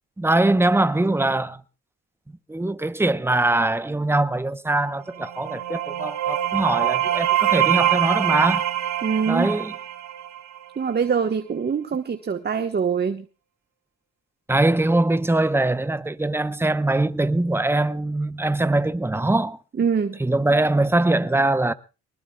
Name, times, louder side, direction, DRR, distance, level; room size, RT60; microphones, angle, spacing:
voice 1, 0.2-1.6 2.5-8.7 9.3-9.7 14.5-19.6 20.2-21.7, right 2 dB, 10° right, 0.9 m, -22 dB
sound 1, 5.1-10.7, right 12 dB, 65° right, 2.4 m, -24 dB
voice 2, 9.0-9.5 10.8-13.3 19.8-20.2, right 6 dB, 35° right, 1.3 m, -24 dB
23.5 x 20.0 x 2.3 m
cardioid pair, 90°, 30 cm